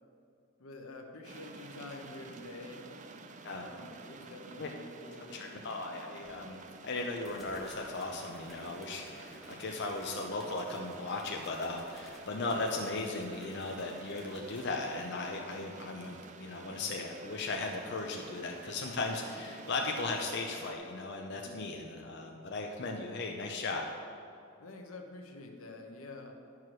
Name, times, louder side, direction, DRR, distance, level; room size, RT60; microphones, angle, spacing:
voice 1, 0.6-2.9 3.5-5.4 9.0-9.2 21.3-21.7 24.6-26.4, left 2 dB, 85° left, 3 dB, 1.0 m, -48 dB
sound 1, 1.2-20.7, right 4 dB, 35° right, 0.5 m, -51 dB
voice 2, 5.3-6.6 6.8-23.8, left 3 dB, 55° left, 1 dB, 0.7 m, -37 dB
sound 2, 6.2-6.3 7.2-14.7, left 1 dB, ahead, 1.2 m, -55 dB
11.0 x 4.8 x 6.1 m, 2.5 s
head